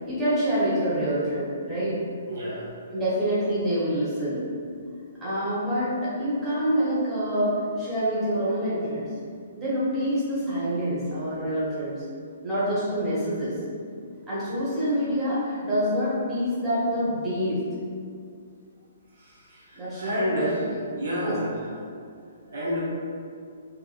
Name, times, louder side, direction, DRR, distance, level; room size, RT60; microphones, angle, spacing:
voice 1, 0.0-2.0 2.9-4.4 5.2-9.1 9.5-12.0 12.4-13.6 14.3-17.6 19.7-20.8 21.2-21.4, equal, 15° right, -11 dB, 1.1 m, -26 dB
voice 2, 2.3-2.7 19.2-20.5 21.0-21.5 22.5-22.9, equal, 55° right, -7 dB, 0.7 m, -30 dB
3.5 x 2.7 x 2.4 m, 2.3 s
figure-of-eight pair, 120°, 0 cm